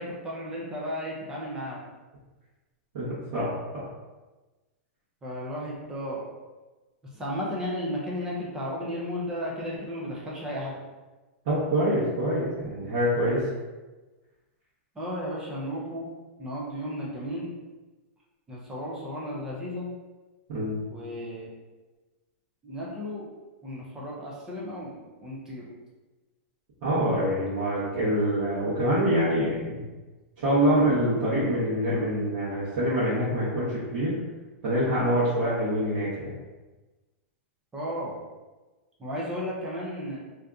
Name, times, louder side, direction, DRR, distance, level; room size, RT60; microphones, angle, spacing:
voice 1, 0.0-1.8 5.2-6.3 7.1-10.8 15.0-16.1 16.4-17.5 18.5-19.9 20.9-21.5 22.6-23.3 23.6-25.6 37.7-38.1 39.0-40.2, equal, 10° right, -5 dB, 0.4 m, -34 dB
voice 2, 2.9-3.5 11.4-13.5 20.5-20.8 26.8-29.9 30.4-34.1 34.6-36.3, equal, 40° right, -11 dB, 1.0 m, -25 dB
2.7 x 2.4 x 3.4 m, 1.2 s
supercardioid pair, 175°, 7 cm